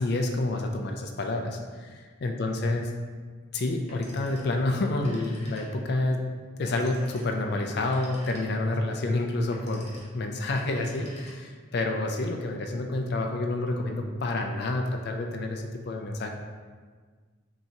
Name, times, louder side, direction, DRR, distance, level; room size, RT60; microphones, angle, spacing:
voice 1, 0.0-2.9 3.5-6.2 6.6-16.3, left 2 dB, 55° left, 3 dB, 0.4 m, -29 dB
Telephone, 3.9-4.6 4.9-6.0 6.7-8.8 9.4-10.2 10.6-11.7, left 1 dB, 35° left, 0.8 m, -49 dB
5.5 x 2.8 x 2.8 m, 1.5 s
head